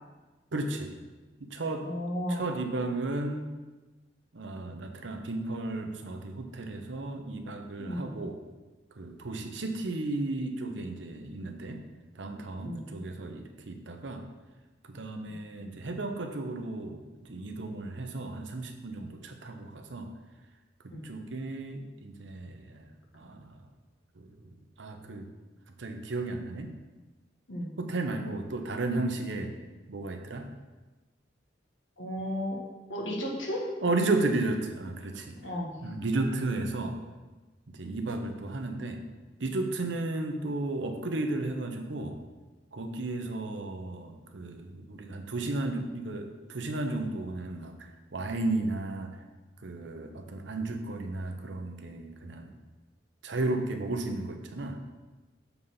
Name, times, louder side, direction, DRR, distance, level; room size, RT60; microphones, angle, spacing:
voice 1, 0.5-0.9 1.4-1.9 2.3-3.5 4.3-8.4 9.0-11.8 12.2-14.2 14.9-17.0 17.3-20.1 21.0-22.8 23.1-23.5 24.2-24.3 24.8-25.2 25.8-26.7 27.8-29.5 29.9-30.5 33.8-35.4 35.8-37.0 37.8-39.0 39.4-42.2 42.7-49.1 49.6-52.5 53.2-54.8, right 2 dB, 70° right, 5 dB, 0.8 m, -33 dB
voice 2, 1.8-2.5 7.8-8.1 12.6-12.8 20.9-21.0 27.5-27.7 32.0-32.6 32.9-33.7 35.4-35.7, equal, 85° left, -1 dB, 1.5 m, -33 dB
7.0 x 4.1 x 5.6 m, 1.2 s
head